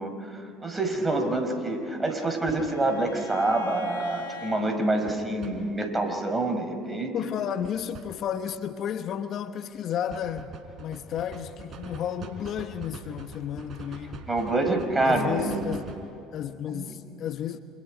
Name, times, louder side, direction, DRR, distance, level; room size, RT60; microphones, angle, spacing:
voice 1, 0.0-7.1 14.3-15.7 16.7-17.0, right 2 dB, 15° right, 5.4 m, -27 dB
sound 1, 0.9-1.1 2.5-2.7 5.1-5.5 7.6-8.1 10.1-16.1, right 5 dB, 45° right, 4.7 m, -43 dB
Bowed string instrument, 1.5-4.7, left 5 dB, 85° left, 3.8 m, -43 dB
voice 2, 6.9-10.5 10.8-14.2 15.0-15.9 16.3-17.6, left 9 dB, 55° left, 1.1 m, -32 dB
29.5 x 27.5 x 5.2 m
hypercardioid pair, 70°, 0 cm